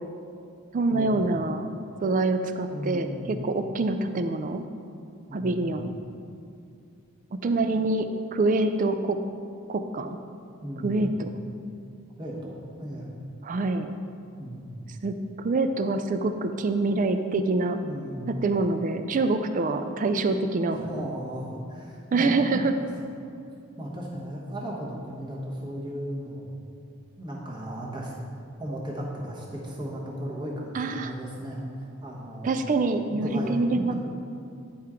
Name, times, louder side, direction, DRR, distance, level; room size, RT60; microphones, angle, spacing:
voice 1, 0.7-1.8 2.0-4.6 5.3-5.9 7.3-9.2 9.7-10.2 10.8-11.4 13.4-14.0 15.0-17.8 18.3-20.8 22.1-22.7 30.7-31.1 32.4-33.9, right 3 dB, 35° right, 8 dB, 0.3 m, -26 dB
voice 2, 2.7-3.4 5.3-5.7 10.6-11.1 12.2-13.2 14.4-14.8 17.8-18.4 20.7-22.9 23.8-26.5 27.2-28.1 28.6-32.5 33.1-33.9, equal, 20° right, -4 dB, 1.1 m, -35 dB
10.0 x 4.4 x 3.7 m, 2.5 s
head